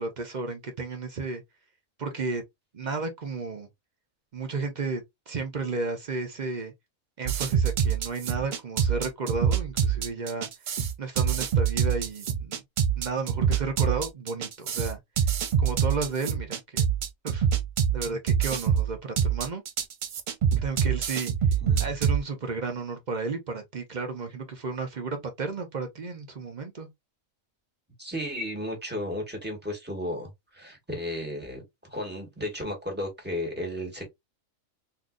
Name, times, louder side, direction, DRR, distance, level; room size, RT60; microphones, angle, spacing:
voice 1, 0.0-1.4 2.0-2.4 2.7-3.7 4.3-6.7 7.2-12.6 12.9-15.0 15.6-16.9 17.2-17.5 17.9-19.6 20.6-21.3 21.8-26.9, right 4 dB, 45° right, 0.6 m, -33 dB
sound 1, 7.3-22.2, right 7 dB, 90° right, 0.4 m, -25 dB
voice 2, 21.6-21.9 28.0-31.6 31.9-34.1, left 1 dB, 10° right, 1.3 m, -34 dB
3.7 x 2.7 x 2.4 m
omnidirectional pair, 1.4 m